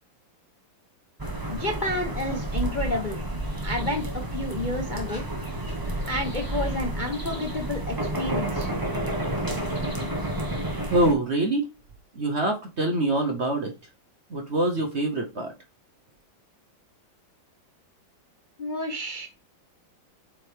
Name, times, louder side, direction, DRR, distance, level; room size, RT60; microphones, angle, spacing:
sound 1, 1.2-11.1, right 1 dB, 15° right, 1.0 m, -30 dB
voice 1, 1.5-3.2 3.6-5.2 6.1-8.7 18.6-19.3, left 1 dB, 40° left, 2 dB, 0.7 m, -30 dB
voice 2, 10.9-11.7 12.2-13.7 14.3-15.5, right 1 dB, 45° right, 3 dB, 1.0 m, -24 dB
7.7 x 4.5 x 3.4 m, 0.28 s
omnidirectional pair, 2.2 m